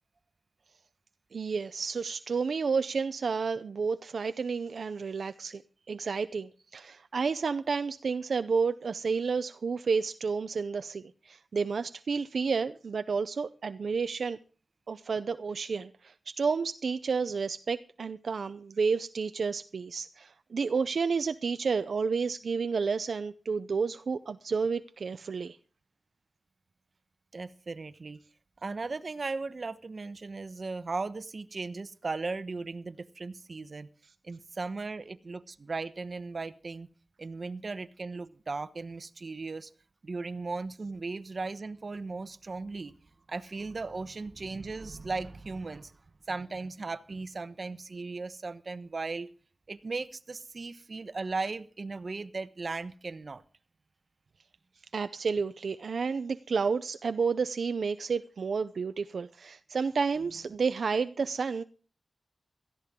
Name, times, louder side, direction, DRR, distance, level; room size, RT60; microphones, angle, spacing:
voice 1, 1.3-5.6 5.9-14.4 14.9-25.6 54.9-61.6, right 5 dB, 80° right, 0.6 m, -31 dB
voice 2, 27.3-28.2 28.6-33.9 34.2-36.9 37.2-39.7 40.0-42.9 43.3-45.9 46.3-49.3 49.7-53.4, right 3 dB, 55° right, 1.0 m, -37 dB
17.5 x 14.0 x 3.7 m
cardioid pair, 60°, 0 cm